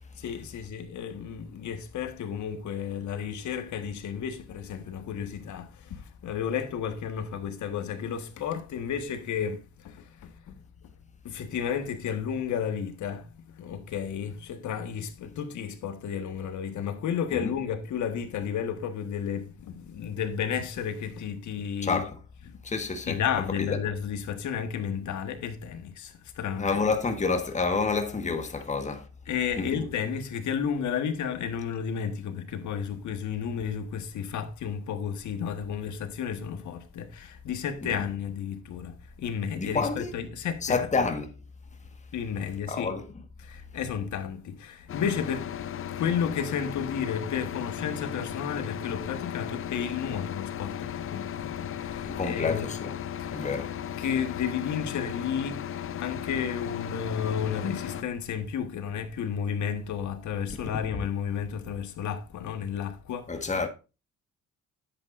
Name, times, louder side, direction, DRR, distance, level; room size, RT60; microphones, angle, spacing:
voice 1, 0.2-10.5 11.2-22.0 22.5-22.6 23.1-26.8 29.3-40.9 42.1-42.9 43.4-45.6 46.0-52.7 53.2-53.3 54.0-63.4, left 7 dB, 70° left, 1.5 m, -32 dB
voice 2, 21.8-22.2 22.6-23.2 23.6-23.8 26.6-29.1 29.6-29.9 37.8-37.9 39.6-40.1 40.6-41.3 42.7-43.1 52.0-52.9 53.3-53.7 63.3-63.7, left 4 dB, 25° left, 1.4 m, -29 dB
sound 1, 44.9-58.0, left 10 dB, 45° left, 0.5 m, -36 dB
10.5 x 8.1 x 2.5 m
cardioid pair, 90°, 30 cm